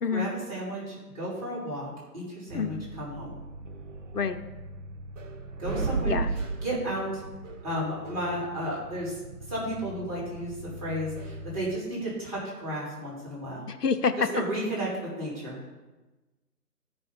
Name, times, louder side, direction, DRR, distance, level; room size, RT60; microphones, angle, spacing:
voice 1, 0.1-3.4 5.6-6.2 6.6-7.1 7.6-9.2 9.5-10.5 10.8-13.7 14.2-14.9 15.2-15.6, equal, 15° right, -8 dB, 3.7 m, -33 dB
voice 2, 2.5-2.9 4.1-4.4 6.1-6.3 13.7-14.3, left 5 dB, 75° left, 9 dB, 0.7 m, -27 dB
sound 1, 2.5-11.8, right 3 dB, 50° right, 0.9 m, -37 dB
12.5 x 5.5 x 5.3 m, 1.2 s
figure-of-eight pair, 140°, 48 cm